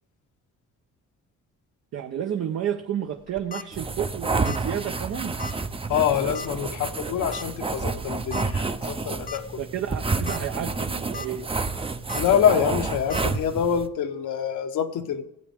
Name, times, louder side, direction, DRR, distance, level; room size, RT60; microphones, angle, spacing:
voice 1, 1.9-5.4 9.6-11.5, right 9 dB, 55° right, 4 dB, 0.9 m, -31 dB
sound 1, 3.2-3.6 4.4-4.7 5.0-5.1 5.4-5.5 6.3-6.6 7.3-7.4 8.3-8.5 8.9-9.0 9.3-9.4 10.1-10.4 10.8-11.3 12.1-12.2 13.1-13.2, left 4 dB, 30° left, 1.0 m, -36 dB
sound 2, 3.7-13.9, right 3 dB, 20° right, 0.7 m, -29 dB
voice 2, 5.9-9.6 12.1-15.2, left 8 dB, 80° left, 6 dB, 1.1 m, -25 dB
16.0 x 8.5 x 3.6 m, 0.82 s
cardioid pair, 90°, 30 cm